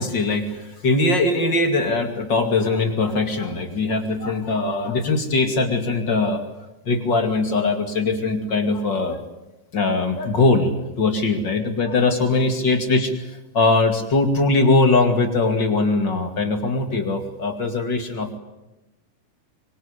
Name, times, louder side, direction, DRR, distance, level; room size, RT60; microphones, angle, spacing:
voice 1, 0.0-6.4 6.8-9.2 9.7-18.4, left 3 dB, 35° left, 5 dB, 2.6 m, -21 dB
24.5 x 24.5 x 8.3 m, 0.98 s
omnidirectional pair, 3.9 m